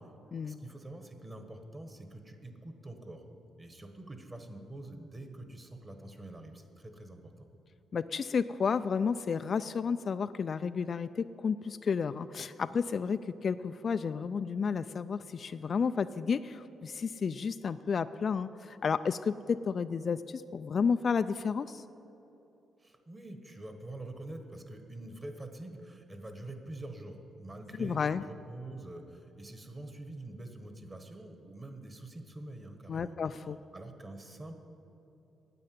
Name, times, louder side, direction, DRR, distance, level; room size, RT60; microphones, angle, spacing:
voice 1, 0.4-3.3 3.6-7.5 22.8-34.5, right 2 dB, 20° right, 6 dB, 1.4 m, -46 dB
voice 2, 7.9-21.8 27.8-28.2 32.9-33.6, left 6 dB, 45° left, 12 dB, 0.3 m, -32 dB
9.8 x 8.6 x 9.5 m, 2.9 s
cardioid pair, 105°, 0 cm